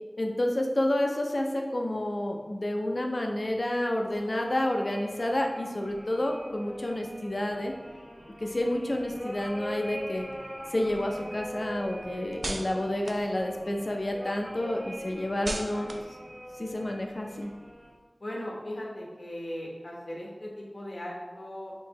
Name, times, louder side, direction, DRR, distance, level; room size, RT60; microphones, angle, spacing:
voice 1, 0.2-7.7 8.4-10.3 10.7-15.9 16.6-17.5, left 1 dB, 55° left, 2 dB, 0.5 m, -29 dB
sound 1, 3.6-17.9, equal, 20° right, 1.1 m, -43 dB
sound 2, 9.9-14.1 14.5-17.9, right 2 dB, 80° right, 0.3 m, -42 dB
voice 2, 15.4-15.8 18.2-21.7, left 1 dB, 75° left, -3 dB, 1.0 m, -38 dB
4.5 x 3.0 x 2.9 m, 1.3 s
wide cardioid pair, 45°, 0 cm